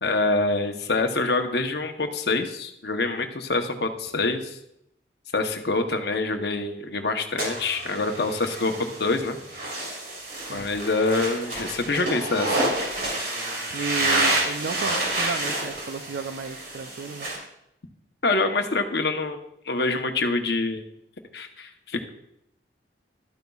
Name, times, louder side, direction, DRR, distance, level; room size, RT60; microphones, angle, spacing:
voice 1, 0.0-4.6 5.3-8.7 9.0-9.4 10.5-12.6 18.2-20.8 21.3-22.1, left 3 dB, 70° left, 6 dB, 0.9 m, -26 dB
sound 1, 7.4-17.4, right 2 dB, 65° right, 3.5 m, -28 dB
voice 2, 13.7-17.3, right 5 dB, 85° right, 8 dB, 0.5 m, -33 dB
12.5 x 9.2 x 2.4 m, 0.78 s
head